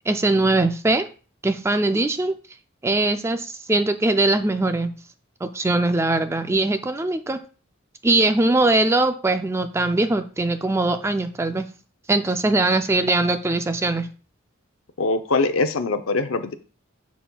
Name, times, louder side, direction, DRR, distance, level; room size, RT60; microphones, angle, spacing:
voice 1, 0.1-1.1 1.4-2.3 2.8-4.9 5.4-7.4 8.0-11.7 12.1-14.1, right 2 dB, 15° right, 8 dB, 0.3 m, -21 dB
voice 2, 15.0-16.5, left 3 dB, 85° left, 9 dB, 0.6 m, -22 dB
10.0 x 4.2 x 2.3 m, 0.37 s
head